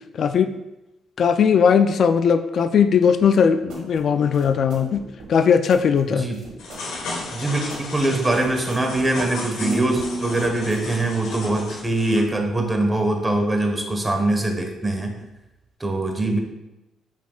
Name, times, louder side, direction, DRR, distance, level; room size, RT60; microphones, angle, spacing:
voice 1, 0.2-0.5 1.2-5.0 5.3-6.3, left 7 dB, 60° left, 9 dB, 0.3 m, -18 dB
sound 1, 3.2-11.1, right 3 dB, 85° right, 1.5 m, -44 dB
sound 2, 6.6-12.2, left 3 dB, 85° left, 1.4 m, -34 dB
voice 2, 7.3-15.1 15.8-16.4, right 2 dB, 20° right, 3 dB, 1.2 m, -23 dB
sound 3, 9.6-12.6, right 2 dB, 60° right, 0.9 m, -33 dB
7.3 x 5.6 x 2.4 m, 0.97 s
cardioid pair, 90°, 0 cm